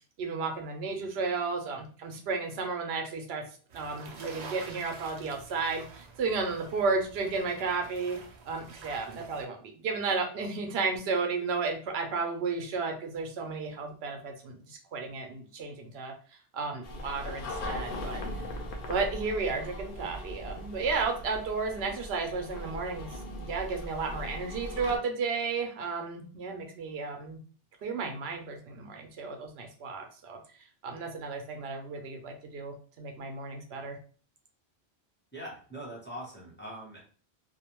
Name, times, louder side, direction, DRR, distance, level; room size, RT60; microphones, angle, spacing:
voice 1, 0.2-3.4 3.7-8.2 8.5-16.1 16.5-18.2 18.9-23.1 23.4-27.4 27.8-30.4 30.8-34.0, right 4 dB, 80° right, 3 dB, 0.8 m, -33 dB
sound 1, 3.7-9.4, right 4 dB, 50° right, 0.5 m, -47 dB
sound 2, 16.8-25.0, left 1 dB, 60° left, 0.7 m, -39 dB
voice 2, 35.3-37.0, equal, 10° left, -5 dB, 0.7 m, -42 dB
2.5 x 2.1 x 2.9 m, 0.42 s
omnidirectional pair, 1.1 m